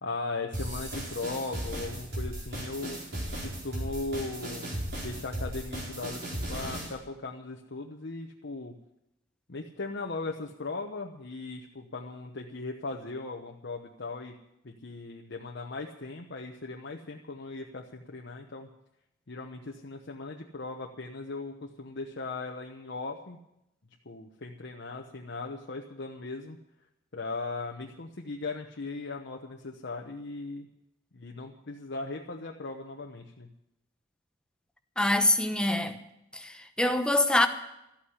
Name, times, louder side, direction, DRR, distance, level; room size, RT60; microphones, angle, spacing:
voice 1, 0.0-3.0 3.4-4.8 5.0-8.8 9.5-14.3 14.6-18.7 19.3-23.4 24.0-26.6 27.1-30.7 31.1-33.5, left 3 dB, 60° left, 1.0 m, -38 dB
sound 1, 0.5-6.9, right 1 dB, 55° right, 4.5 m, -36 dB
voice 2, 35.0-36.0 36.3-37.5, left 1 dB, 5° left, 0.9 m, -25 dB
13.0 x 8.7 x 9.7 m
head